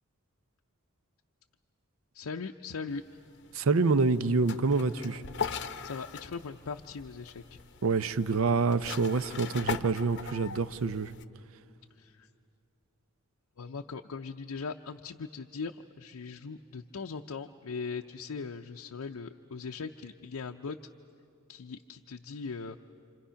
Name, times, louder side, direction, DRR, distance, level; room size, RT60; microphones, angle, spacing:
voice 1, 2.1-3.0 5.8-7.6 12.0-12.3 13.6-20.8 21.5-22.8, left 5 dB, 90° left, 3 dB, 0.6 m, -40 dB
sound 1, 3.0-11.2, left 5 dB, 55° left, 0.7 m, -40 dB
voice 2, 3.5-5.2 7.8-11.1, right 4 dB, 70° right, 14 dB, 0.6 m, -27 dB
28.0 x 27.0 x 5.7 m, 2.5 s
head